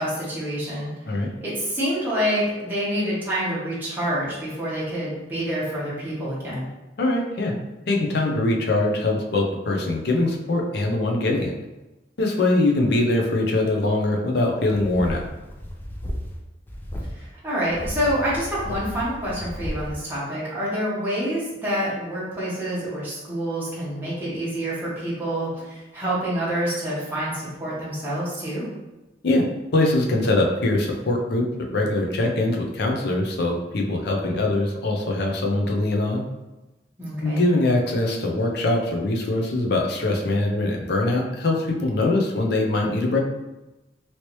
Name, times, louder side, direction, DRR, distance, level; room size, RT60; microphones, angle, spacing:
voice 1, 0.0-0.9 1.4-6.7 17.1-28.7 37.0-37.4, equal, 10° right, -9 dB, 0.9 m, -27 dB
voice 2, 7.0-7.5 7.9-11.5 12.2-15.3 29.2-29.5 29.7-36.2 37.2-43.2, left 2 dB, 65° left, 0 dB, 0.6 m, -22 dB
sound 1, 14.7-16.4 16.7-17.1 17.6-19.9, equal, 10° left, 0.4 m, -33 dB
3.1 x 2.9 x 2.9 m, 1.0 s
head